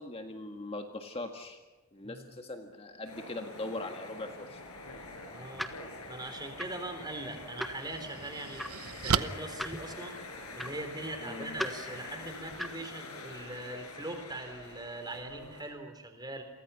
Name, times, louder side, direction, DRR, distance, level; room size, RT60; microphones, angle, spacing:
voice 1, 0.0-1.6 1.9-4.6 11.2-11.6, left 2 dB, 25° left, 4 dB, 1.7 m, -40 dB
voice 2, 2.0-2.4 5.3-5.7 6.1-8.7 9.0-10.2 10.6-16.4, right 2 dB, 20° right, 7 dB, 3.8 m, -41 dB
sound 1, 3.0-15.7, left 2 dB, 80° left, 6.4 m, -46 dB
sound 2, 5.2-12.9, equal, ahead, 1.4 m, -43 dB
sound 3, 6.9-7.0 7.6-10.6, right 6 dB, 75° right, 1.0 m, -34 dB
29.5 x 23.5 x 5.8 m, 1.2 s
head